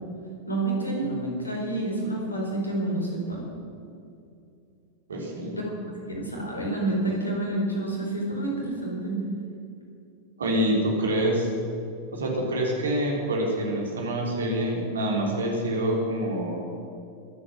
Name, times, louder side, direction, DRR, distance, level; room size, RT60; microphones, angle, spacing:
voice 1, 0.5-3.4 5.5-5.6 5.9-9.2, right 2 dB, 80° left, -1 dB, 4.5 m, -28 dB
voice 2, 5.1-5.6 10.4-11.5 12.1-16.6, right 1 dB, 70° right, -1 dB, 3.8 m, -26 dB
23.5 x 8.6 x 6.2 m, 2.6 s
figure-of-eight pair, 90°, 0 cm